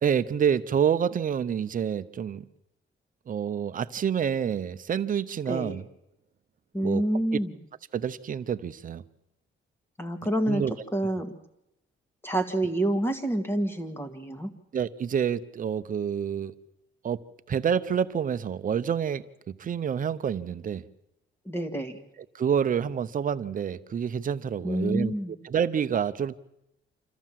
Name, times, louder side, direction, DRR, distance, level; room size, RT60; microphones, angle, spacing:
voice 1, 0.0-2.5 3.3-5.8 6.8-7.0 7.9-9.0 10.5-10.7 14.7-16.5 17.0-17.2 17.5-20.8 22.3-25.1 25.4-26.3, right 8 dB, 40° right, 0.7 m, -28 dB
voice 2, 5.5-5.8 6.7-7.5 10.0-10.6 10.9-11.3 12.2-14.5 21.4-22.0 24.6-25.3, right 1 dB, 10° left, 1.7 m, -28 dB
26.5 x 14.5 x 7.5 m
wide cardioid pair, 165°, 21 cm